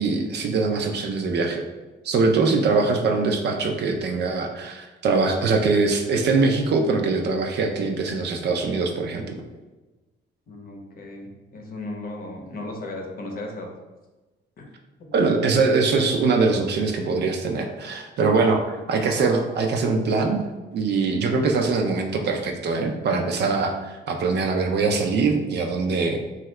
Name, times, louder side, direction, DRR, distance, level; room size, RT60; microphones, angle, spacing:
voice 1, 0.0-1.6 2.0-9.4 15.1-20.4 20.7-26.2, right 4 dB, 60° right, 3 dB, 0.5 m, -22 dB
voice 2, 10.5-13.7 14.6-14.7, left 2 dB, 50° left, 1 dB, 0.7 m, -36 dB
2.7 x 2.4 x 3.1 m, 1.2 s
cardioid pair, 90°, 20 cm